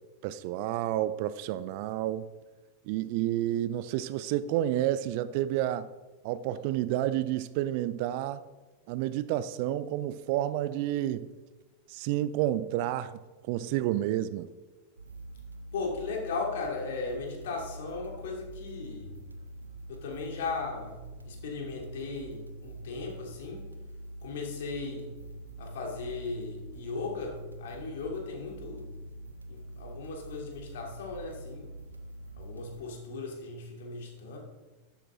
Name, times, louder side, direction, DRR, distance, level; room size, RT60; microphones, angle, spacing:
voice 1, 0.2-2.3 2.9-5.9 6.2-8.4 8.9-11.3 11.9-13.2 13.5-14.5, right 13 dB, 45° right, 0.5 m, -30 dB
sound 1, 15.0-32.8, right 1 dB, 80° right, 1.0 m, -45 dB
voice 2, 15.7-19.1 19.9-23.7 24.2-25.2 25.6-28.9 29.5-31.7 32.4-34.4, left 4 dB, 55° left, 3.1 m, -37 dB
13.0 x 11.5 x 3.8 m
figure-of-eight pair, 90°, 0 cm